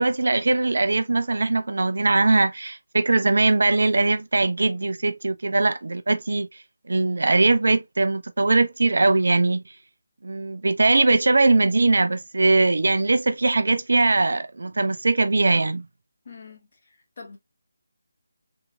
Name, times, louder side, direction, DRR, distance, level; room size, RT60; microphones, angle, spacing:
voice 1, 0.0-6.5 6.9-9.6 10.2-15.9, right 3 dB, 60° right, 0.4 m, -21 dB
voice 2, 16.2-17.4, left 4 dB, 40° left, 1.2 m, -45 dB
3.6 x 2.9 x 2.2 m
figure-of-eight pair, 155°, 0 cm